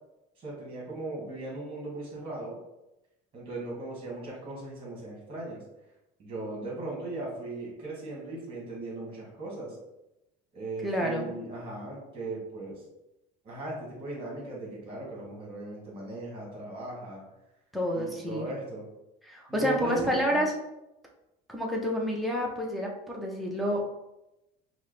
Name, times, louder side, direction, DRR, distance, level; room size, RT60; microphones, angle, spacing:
voice 1, 0.4-2.6 3.3-5.6 6.2-9.8 10.5-12.8 13.4-17.2 17.9-18.8 19.5-20.4, right 2 dB, 30° right, -3 dB, 1.5 m, -38 dB
voice 2, 10.8-11.3 17.7-18.5 19.2-20.5 21.5-23.8, equal, ahead, -2 dB, 0.5 m, -29 dB
4.6 x 2.0 x 3.1 m, 0.93 s
cardioid pair, 160°, 19 cm